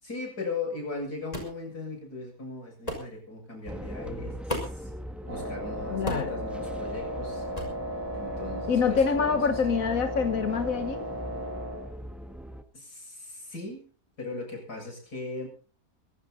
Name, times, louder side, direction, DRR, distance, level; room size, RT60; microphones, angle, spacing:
voice 1, 0.0-4.3 4.6-4.9 5.3-7.4 8.1-9.4 9.7-9.8 12.7-13.9 14.2-15.5, left 3 dB, 85° left, 0 dB, 7.6 m, -38 dB
sound 1, 1.3-1.6 2.9-3.1 4.5-4.9 6.1-6.4 7.5-7.8, left 1 dB, 25° left, 5.5 m, -34 dB
sound 2, 3.6-12.6, right 1 dB, ahead, 1.3 m, -40 dB
Wind instrument woodwind instrument, 5.3-11.9, equal, 85° right, 8.7 m, -36 dB
voice 2, 5.9-6.4 8.7-11.1, left 6 dB, 60° left, 8 dB, 1.6 m, -26 dB
23.5 x 11.5 x 4.2 m, 0.38 s
omnidirectional pair, 1.6 m